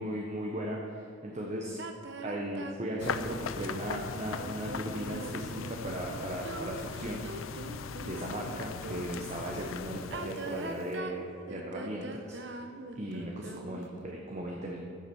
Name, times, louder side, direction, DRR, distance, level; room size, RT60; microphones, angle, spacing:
voice 1, 0.0-1.8 2.2-7.7 8.0-12.6 12.9-14.8, right 1 dB, 35° right, -1 dB, 1.0 m, -37 dB
sound 1, 1.8-9.3 10.0-14.0, right 2 dB, 60° right, 0.8 m, -42 dB
sound 2, 3.0-10.9, left 6 dB, 85° left, 0.5 m, -40 dB
10.0 x 7.2 x 6.9 m, 2.4 s
head